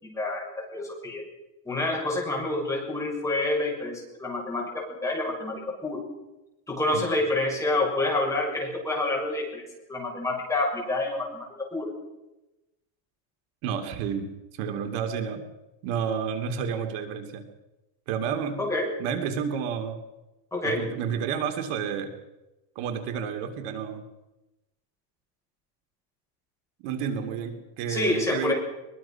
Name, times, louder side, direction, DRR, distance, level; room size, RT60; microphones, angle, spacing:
voice 1, 0.0-1.2 1.6-6.0 6.7-11.9 18.6-18.9 20.5-20.8 27.9-28.5, left 2 dB, 5° left, -2 dB, 6.5 m, -28 dB
voice 2, 13.6-14.3 14.6-15.4 15.8-17.4 18.1-18.6 19.0-20.0 20.6-22.1 22.7-24.0 26.8-28.5, right 7 dB, 75° right, 6 dB, 3.2 m, -30 dB
23.0 x 23.0 x 5.9 m, 0.99 s
cardioid pair, 170°, 47 cm